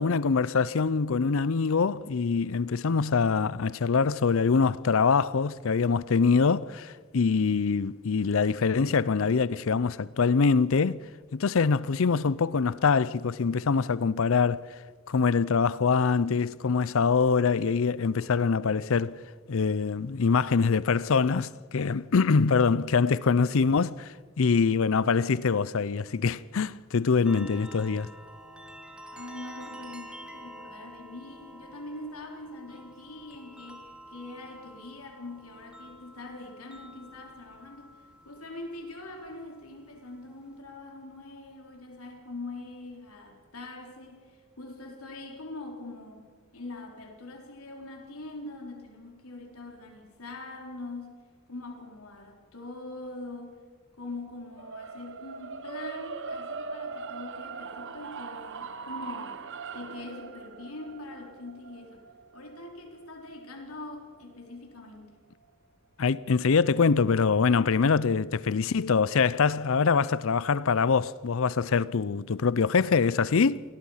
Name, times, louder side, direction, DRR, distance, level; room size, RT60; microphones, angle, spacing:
voice 1, 0.0-11.1 11.3-14.7 15.1-19.2 19.5-28.1 66.0-73.6, left 5 dB, 65° left, 0.5 m, -24 dB
sound 1, 27.2-40.6, equal, 5° right, 1.8 m, -49 dB
voice 2, 29.1-46.3 46.5-51.2 51.5-53.6 54.0-59.4 59.7-62.0 62.3-65.1, left 2 dB, 85° left, 3.9 m, -43 dB
sound 2, 54.6-64.7, right 5 dB, 60° right, 1.0 m, -41 dB
26.5 x 18.0 x 5.7 m
head